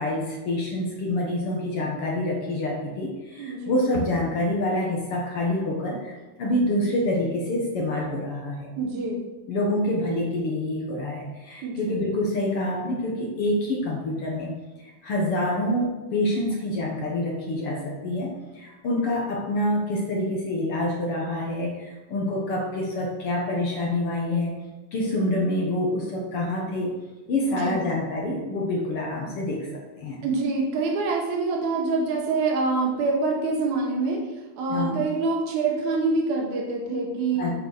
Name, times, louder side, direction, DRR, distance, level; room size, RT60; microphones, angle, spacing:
voice 1, 0.0-6.1 6.4-8.7 9.5-14.5 14.8-24.5 24.9-27.0 27.3-30.2 34.7-35.0 37.3-37.5, left 1 dB, 55° left, -1 dB, 1.6 m, -27 dB
voice 2, 3.4-3.7 8.8-9.2 11.6-11.9 27.5-27.8 30.2-34.2 34.6-37.5, right 3 dB, 60° right, 0 dB, 2.9 m, -25 dB
8.9 x 6.1 x 6.6 m, 1.2 s
omnidirectional pair, 4.3 m